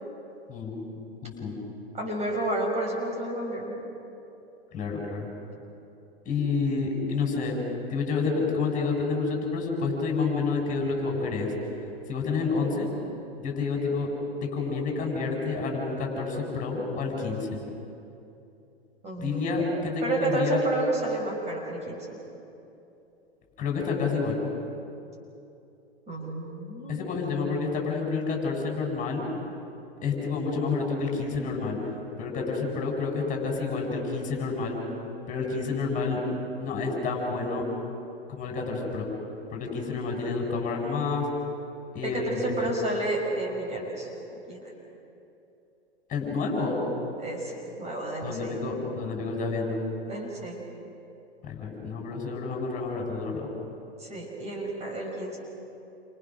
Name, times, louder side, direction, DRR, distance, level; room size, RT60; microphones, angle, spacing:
voice 1, 1.2-1.6 4.7-5.3 6.3-7.6 7.9-11.5 12.1-12.9 13.4-14.1 14.4-17.6 19.2-20.6 23.6-24.4 26.9-29.2 30.0-31.8 32.2-34.8 35.3-36.2 36.6-37.6 38.3-39.1 39.5-41.3 41.9-42.4 46.1-46.8 48.2-49.8 51.4-53.5, left 4 dB, 25° left, 0 dB, 7.4 m, -29 dB
voice 2, 1.9-3.8 19.0-19.6 20.0-22.2 26.1-27.1 42.0-44.1 44.5-44.6 47.2-48.6 50.1-50.6 54.0-55.4, right 2 dB, 20° right, 0 dB, 6.0 m, -31 dB
29.5 x 27.5 x 6.4 m, 2.8 s
figure-of-eight pair, 105°, 32 cm